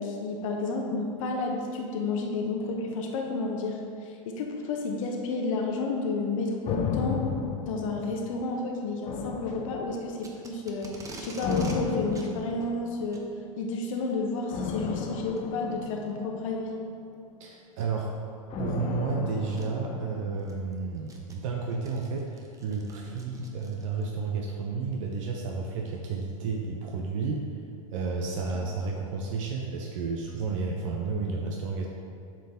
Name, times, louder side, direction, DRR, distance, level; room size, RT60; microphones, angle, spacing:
voice 1, 0.0-7.2 7.6-13.2 13.6-16.8, left 3 dB, 65° left, 1 dB, 0.9 m, -31 dB
sound 1, 6.7-8.6 9.1-10.3 11.4-13.1 14.5-16.9 18.5-20.7 21.0-21.1, left 5 dB, 30° left, 0.6 m, -34 dB
Packing tape duct tape, 10.2-11.8 12.1-12.3 13.0-13.3 14.4-14.6 15.3-15.4 16.1-16.2 17.7-18.0 19.1-19.2 19.6-19.7 20.2-24.1, right 2 dB, 20° right, 0.8 m, -46 dB
voice 2, 17.4-18.1 18.6-27.4 27.9-31.9, right 4 dB, 65° right, 0 dB, 0.7 m, -32 dB
7.3 x 4.7 x 3.6 m, 2.5 s
hypercardioid pair, 110°, 18 cm